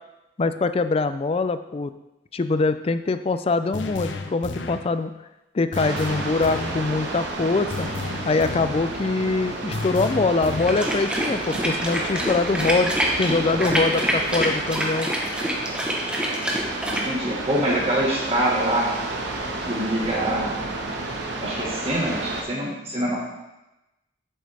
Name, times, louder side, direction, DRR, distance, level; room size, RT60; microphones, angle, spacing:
voice 1, 0.4-1.9 2.3-5.1 5.5-7.9 8.2-15.1, left 3 dB, 30° left, 11 dB, 0.4 m, -23 dB
sound 1, 3.7-4.9 5.7-6.9 7.7-8.9 9.7-10.9, left 3 dB, 85° left, 0.7 m, -32 dB
sound 2, 5.7-22.4, right 2 dB, 70° right, 1.3 m, -31 dB
sound 3, 10.6-17.1, equal, 5° right, 1.0 m, -26 dB
voice 2, 16.8-18.9 19.7-20.5 21.4-23.2, right 1 dB, 35° right, -4 dB, 1.5 m, -25 dB
8.3 x 7.6 x 3.4 m, 0.97 s
head